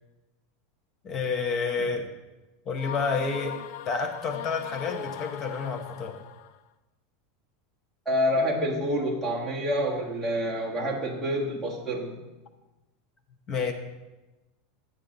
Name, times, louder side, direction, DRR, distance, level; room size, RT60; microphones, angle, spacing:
voice 1, 1.0-2.1 2.7-3.6 3.9-6.2 13.5-13.7, left 4 dB, 25° left, 4 dB, 0.9 m, -29 dB
sound 1, 2.8-6.6, left 10 dB, 55° left, 0.4 m, -39 dB
voice 2, 8.0-12.2, equal, 5° right, -5 dB, 1.5 m, -27 dB
9.2 x 8.5 x 3.9 m, 1.1 s
supercardioid pair, 160°, 0 cm